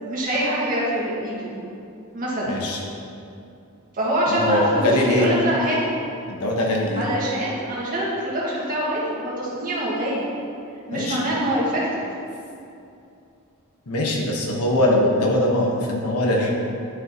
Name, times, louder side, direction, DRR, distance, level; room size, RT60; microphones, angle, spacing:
voice 1, 0.0-1.5 2.1-2.5 3.9-5.9 7.0-10.3 10.9-12.0, right 1 dB, 40° right, -6 dB, 1.9 m, -24 dB
voice 2, 2.4-2.8 4.3-5.3 6.3-7.0 10.9-11.3 13.9-16.5, left 1 dB, 90° left, -1 dB, 1.3 m, -21 dB
10.5 x 6.1 x 3.0 m, 2.6 s
head